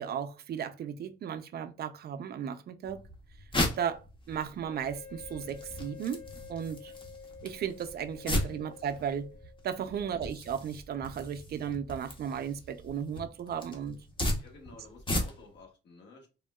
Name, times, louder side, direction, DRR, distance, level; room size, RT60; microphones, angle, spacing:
voice 1, 0.0-3.0 3.8-6.2 6.5-6.9 7.4-9.3 9.6-14.0, right 8 dB, 55° right, 0.4 m, -35 dB
sound 1, 2.9-15.6, left 1 dB, 25° left, 0.8 m, -37 dB
Wind instrument woodwind instrument, 4.7-9.7, left 7 dB, 90° left, 1.3 m, -50 dB
voice 2, 9.9-10.2 14.4-16.3, left 3 dB, 65° left, 1.2 m, -53 dB
3.5 x 2.2 x 2.2 m
cardioid pair, 90°, 20 cm